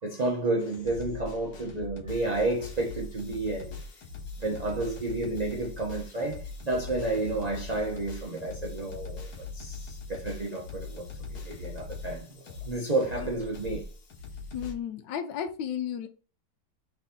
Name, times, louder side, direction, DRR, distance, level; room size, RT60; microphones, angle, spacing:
voice 1, 0.0-3.8 4.4-12.3 12.6-13.9, right 2 dB, 30° right, 0.7 m, -31 dB
sound 1, 0.6-14.7, left 3 dB, 65° left, 1.6 m, -41 dB
voice 2, 14.5-16.1, left 8 dB, 85° left, 1.3 m, -33 dB
4.2 x 3.6 x 3.5 m
omnidirectional pair, 1.9 m